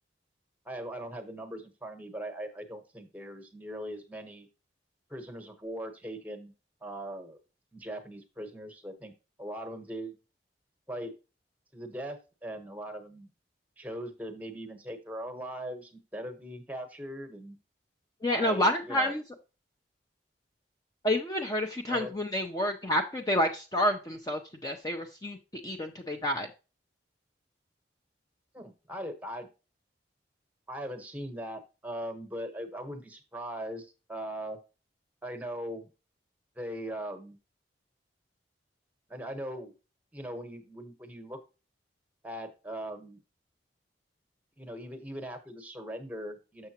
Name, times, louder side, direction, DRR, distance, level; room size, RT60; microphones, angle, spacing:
voice 1, 0.7-4.5 5.1-6.5 6.8-7.4 7.7-9.1 9.4-10.2 10.9-11.1 11.7-13.3 13.8-17.6 18.3-19.1 21.9-22.1 28.5-29.5 30.7-34.6 35.2-35.9 36.6-37.4 39.1-39.7 40.1-41.4 42.2-43.2 44.6-46.7, equal, 10° right, 7 dB, 1.0 m, -40 dB
voice 2, 18.2-19.2 21.0-25.4 25.6-26.5, left 1 dB, 20° left, 4 dB, 0.5 m, -29 dB
6.9 x 6.6 x 2.9 m, 0.30 s
head